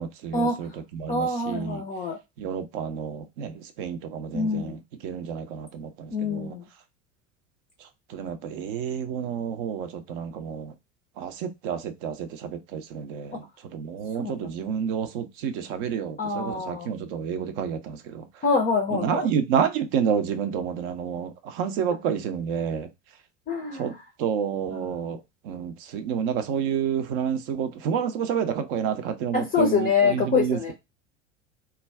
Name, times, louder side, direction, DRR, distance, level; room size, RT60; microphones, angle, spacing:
voice 1, 0.0-1.8 2.4-6.6 8.1-10.7 11.2-13.5 13.7-18.3 18.9-22.9 23.7-23.9 24.2-30.7, right 7 dB, 45° right, 0.6 m, -29 dB
voice 2, 1.1-2.2 4.3-4.8 6.1-6.7 14.2-14.5 16.2-16.9 18.4-19.3 23.5-24.0 24.7-25.0 29.3-30.7, left 4 dB, 20° left, 0.5 m, -25 dB
2.3 x 2.2 x 3.3 m
figure-of-eight pair, 75°, 38 cm